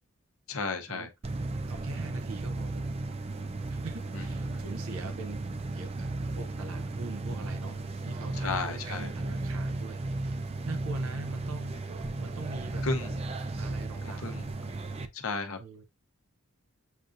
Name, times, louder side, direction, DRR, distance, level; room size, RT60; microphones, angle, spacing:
voice 1, 0.5-1.1 4.1-4.6 8.3-9.1 12.8-13.2 14.0-14.5 15.1-15.6, left 4 dB, 75° left, 0.9 m, -34 dB
sound 1, 1.2-15.1, right 2 dB, 30° right, 0.4 m, -35 dB
voice 2, 1.7-2.9 3.7-5.4 5.7-6.1 6.3-7.8 8.0-11.9 12.2-12.9 13.6-14.3 15.6-15.8, right 3 dB, 75° right, 0.6 m, -42 dB
7.3 x 2.6 x 2.5 m
head